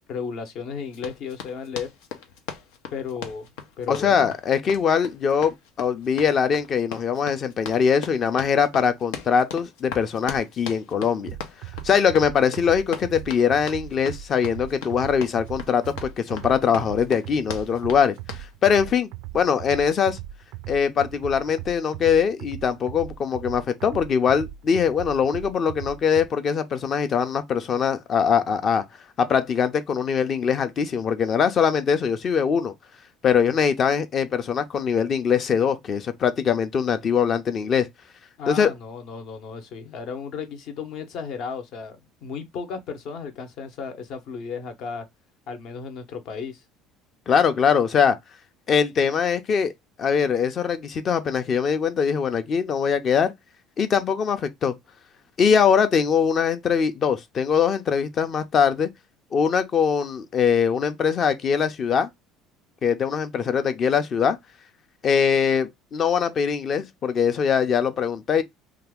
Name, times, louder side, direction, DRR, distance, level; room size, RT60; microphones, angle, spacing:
voice 1, 0.1-1.9 2.9-3.5 3.8-4.3 38.4-45.1 45.5-46.6, left 6 dB, 60° left, 0.9 m, -34 dB
Run, 0.9-18.5, left 7 dB, 90° left, 0.7 m, -39 dB
voice 2, 3.9-11.3 11.8-18.2 18.6-19.1 19.3-20.2 20.7-28.8 29.2-32.7 33.2-37.9 38.5-38.7 47.3-48.2 48.7-49.7 50.0-53.3 53.8-54.7 55.4-58.9 59.3-62.1 62.8-64.4 65.0-68.4, left 7 dB, 40° left, 0.6 m, -22 dB
sound 1, 11.3-26.3, right 14 dB, 75° right, 0.3 m, -39 dB
2.8 x 2.4 x 3.5 m
cardioid pair, 125°, 0 cm